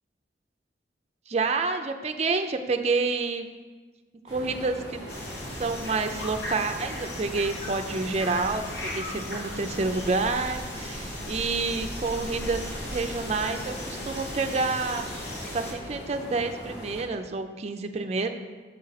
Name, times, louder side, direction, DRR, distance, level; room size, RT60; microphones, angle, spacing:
voice 1, 1.3-3.5 4.2-5.0 5.6-15.1 15.5-18.3, right 3 dB, 35° right, 6 dB, 0.4 m, -28 dB
sound 1, 4.3-17.0, equal, 20° left, 2.2 m, -41 dB
sound 2, 5.1-15.7, left 1 dB, 75° left, 1.3 m, -37 dB
6.7 x 5.4 x 4.0 m, 1.4 s
head